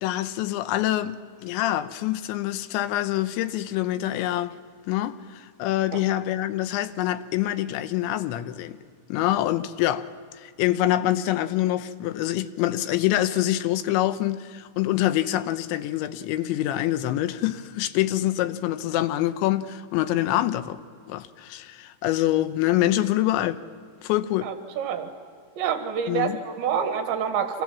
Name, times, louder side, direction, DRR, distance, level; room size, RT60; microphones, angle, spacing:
voice 1, 0.0-4.6 4.9-8.8 9.1-10.1 10.4-20.8 21.1-23.6 24.0-24.5 26.1-26.4, left 14 dB, 80° left, 3.1 m, -25 dB
voice 2, 24.4-25.1 25.6-27.6, right 7 dB, 75° right, 3.9 m, -27 dB
29.5 x 26.0 x 7.3 m
omnidirectional pair, 5.3 m